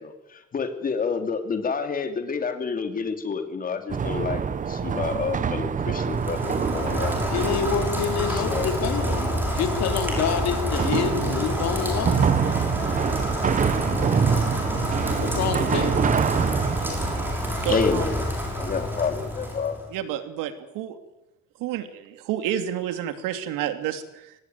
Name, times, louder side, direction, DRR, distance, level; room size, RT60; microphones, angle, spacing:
voice 1, 0.0-7.4 8.3-8.8 17.7-19.8, left 5 dB, 25° left, 7 dB, 2.9 m, -29 dB
sound 1, 3.9-17.3, right 7 dB, 25° right, 1.1 m, -26 dB
Rain, 6.0-19.9, equal, 5° right, 6.3 m, -28 dB
voice 2, 7.3-9.3 9.5-12.3 15.2-15.9, left 8 dB, 55° left, 7 dB, 3.6 m, -27 dB
voice 3, 17.6-18.1 19.9-21.0 21.6-24.3, right 10 dB, 85° right, 9 dB, 2.9 m, -30 dB
24.0 x 19.0 x 9.3 m, 0.93 s
cardioid pair, 165°, 32 cm